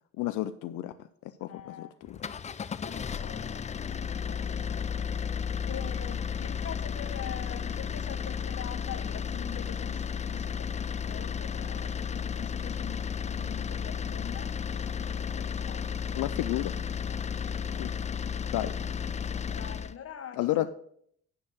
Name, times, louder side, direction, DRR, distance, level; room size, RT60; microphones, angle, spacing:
voice 1, 0.2-0.9 1.4-2.2 16.2-16.7 17.8-17.9 18.5-18.7 20.4-20.7, left 15 dB, 90° left, 10 dB, 0.5 m, -31 dB
voice 2, 1.4-2.0 2.8-16.1 16.9-17.2 19.4-20.7, left 8 dB, 50° left, 7 dB, 1.3 m, -45 dB
sound 1, 2.1-20.0, left 7 dB, 25° left, 0.4 m, -33 dB
9.9 x 4.5 x 6.3 m, 0.65 s
cardioid pair, 90°, 30 cm